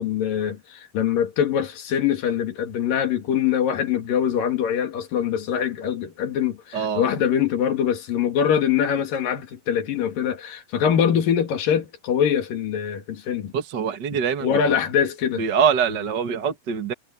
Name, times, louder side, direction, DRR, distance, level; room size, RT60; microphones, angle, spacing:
voice 1, 0.0-13.5 14.4-15.5, left 8 dB, 85° left, 4.0 m, -23 dB
voice 2, 6.7-7.1 13.5-14.5 15.4-16.9, right 7 dB, 45° right, 1.6 m, -23 dB
omnidirectional pair, 3.8 m